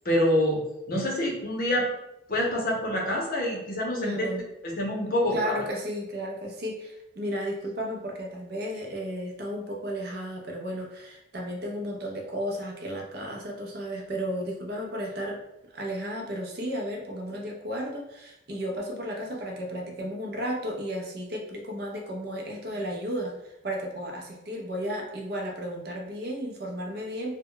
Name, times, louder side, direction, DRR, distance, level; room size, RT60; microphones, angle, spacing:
voice 1, 0.0-0.6 0.9-1.9 2.3-5.6, left 1 dB, 45° left, -2 dB, 0.6 m, -26 dB
voice 2, 4.0-4.4 5.3-15.4 15.7-27.4, equal, 50° right, 0 dB, 0.5 m, -33 dB
2.2 x 2.1 x 3.7 m, 0.88 s
head